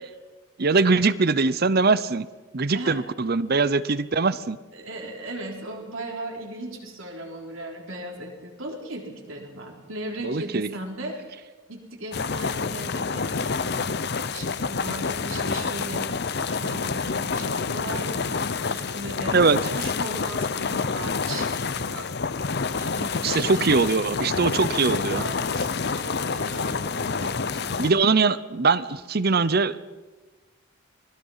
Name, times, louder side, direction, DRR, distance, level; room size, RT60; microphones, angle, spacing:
voice 1, 0.6-2.3 2.5-4.6 10.2-10.7 19.3-19.6 23.2-25.3 27.8-29.8, right 4 dB, 45° right, 16 dB, 0.7 m, -22 dB
voice 2, 4.7-19.4 19.7-22.1 22.7-23.7 24.2-24.5 24.8-27.9, right 1 dB, 65° right, 2 dB, 3.9 m, -38 dB
sound 1, 12.1-27.9, left 4 dB, 50° left, 0.7 m, -28 dB
25.5 x 20.0 x 5.6 m, 1.3 s
head